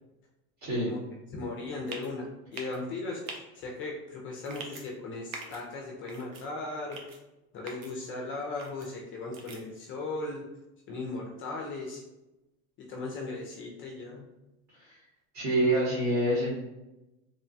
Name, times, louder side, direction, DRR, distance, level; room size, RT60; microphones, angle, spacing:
voice 1, 0.6-0.9 14.7-15.0 15.3-16.6, right 1 dB, 40° right, -6 dB, 1.1 m, -27 dB
voice 2, 1.3-7.1 7.5-10.5 10.9-12.0 12.8-14.2, left 3 dB, 30° left, -1 dB, 0.4 m, -37 dB
sound 1, 1.9-2.1 2.5-2.8 3.3-3.4 4.4-4.8 5.3-5.6 6.1-6.4 6.9-7.2 7.7-7.9 8.6-8.9 9.3-9.6, right 4 dB, 85° right, 0.7 m, -42 dB
3.0 x 2.1 x 2.6 m, 0.98 s
supercardioid pair, 115°, 41 cm